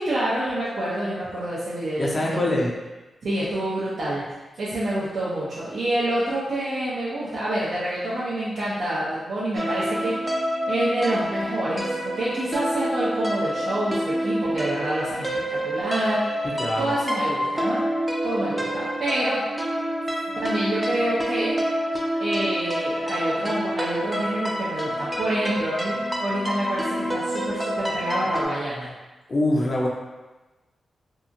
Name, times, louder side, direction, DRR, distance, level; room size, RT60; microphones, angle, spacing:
voice 1, 0.0-2.5 3.2-4.2 4.6-10.2 10.7-16.2 16.8-17.8 18.2-19.4 20.4-21.5 22.2-28.9, right 1 dB, 75° right, -9 dB, 0.6 m, -27 dB
voice 2, 2.0-2.7 16.4-16.9 29.3-29.9, left 1 dB, 50° left, -2 dB, 0.5 m, -24 dB
sound 1, 9.6-28.5, equal, 10° right, 0.4 m, -27 dB
2.7 x 2.4 x 2.5 m, 1.1 s
cardioid pair, 65°, 0 cm